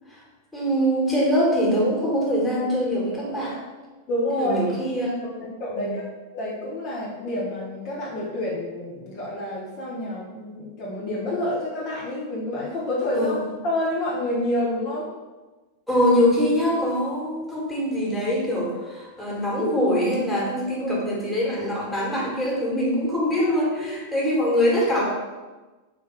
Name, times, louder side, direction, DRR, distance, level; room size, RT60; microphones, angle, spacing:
voice 1, 0.5-3.6 4.3-5.4 5.7-5.9 13.1-13.4 15.9-25.1, equal, 5° left, -5 dB, 1.4 m, -23 dB
voice 2, 4.1-4.7 5.6-6.1 6.3-15.1 20.8-20.9 23.4-24.0, left 1 dB, 40° left, -6 dB, 1.0 m, -28 dB
3.5 x 2.8 x 4.4 m, 1.2 s
figure-of-eight pair, 90°, 0 cm